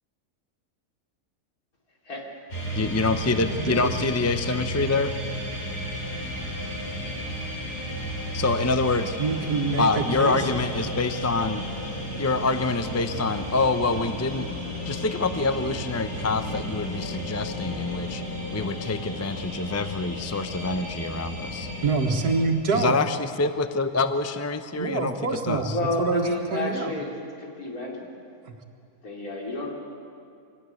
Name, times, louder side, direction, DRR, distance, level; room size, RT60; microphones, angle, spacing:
sound 1, 2.5-22.4, equal, 40° left, 4.8 m, -33 dB
voice 1, 2.7-5.1 8.3-9.2 9.8-11.6 12.2-14.5 14.8-18.2 18.5-21.7 22.7-25.2 25.4-25.8, left 3 dB, 20° left, 10 dB, 0.5 m, -26 dB
voice 2, 3.5-4.0 9.2-10.4 21.8-23.0 24.8-26.9, right 4 dB, 90° right, 4 dB, 2.3 m, -26 dB
voice 3, 25.7-27.1 27.4-28.1 29.0-29.7, left 2 dB, 70° left, -1 dB, 4.1 m, -30 dB
25.0 x 17.0 x 9.7 m, 2.5 s
omnidirectional pair, 1.6 m